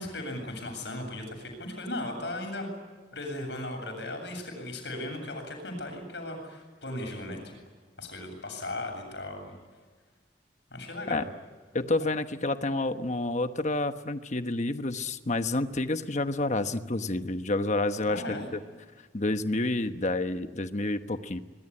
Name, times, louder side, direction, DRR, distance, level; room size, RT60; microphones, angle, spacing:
voice 1, 0.0-2.7 3.1-7.6 8.0-9.6 10.7-11.2 18.1-18.5, left 1 dB, 70° left, 4 dB, 7.8 m, -37 dB
voice 2, 11.7-18.6 19.1-21.4, left 2 dB, 40° left, 9 dB, 1.2 m, -29 dB
24.5 x 22.0 x 9.8 m, 1.4 s
head